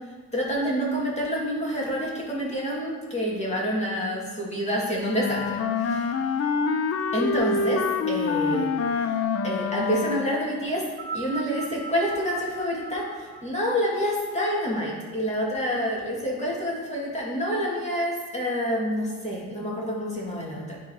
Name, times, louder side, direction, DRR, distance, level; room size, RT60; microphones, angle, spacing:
voice 1, 0.3-6.1 7.1-8.7 8.9-9.2 9.4-10.8 11.1-20.8, equal, 20° left, -4 dB, 2.7 m, -28 dB
Wind instrument woodwind instrument, 5.0-10.5, left 5 dB, 50° left, 0.7 m, -26 dB
sound 1, 10.9-15.4 16.3-16.4, right 4 dB, 40° right, 0.7 m, -40 dB
10.5 x 4.2 x 4.7 m, 1.4 s
cardioid pair, 90°, 30 cm